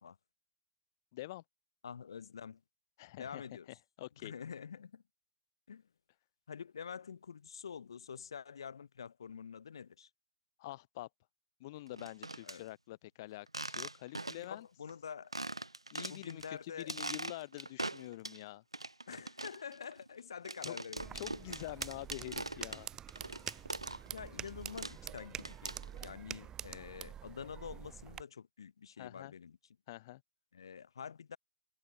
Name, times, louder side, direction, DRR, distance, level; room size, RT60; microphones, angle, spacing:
voice 1, 1.1-1.4 3.0-3.4 4.0-4.3 10.6-11.1 11.6-14.7 15.9-18.6 20.6-20.8 21.1-22.9 29.0-29.3 29.9-30.2, left 17 dB, 45° left, 0.6 m, -46 dB
voice 2, 1.8-2.6 3.2-3.7 4.2-5.0 5.7-5.8 6.5-10.1 12.4-12.6 14.3-15.3 16.1-17.0 19.1-21.2 24.1-29.6 30.5-31.4, left 7 dB, 65° left, 2.5 m, -47 dB
sound 1, 11.9-12.6 13.5-14.6 14.9-15.0 15.3-16.5 16.8-18.4 18.7-24.2 24.5-26.1, right 2 dB, 85° right, 1.4 m, -42 dB
sound 2, 21.0-28.2, right 10 dB, 20° right, 1.3 m, -46 dB
figure-of-eight pair, 100°, 3 cm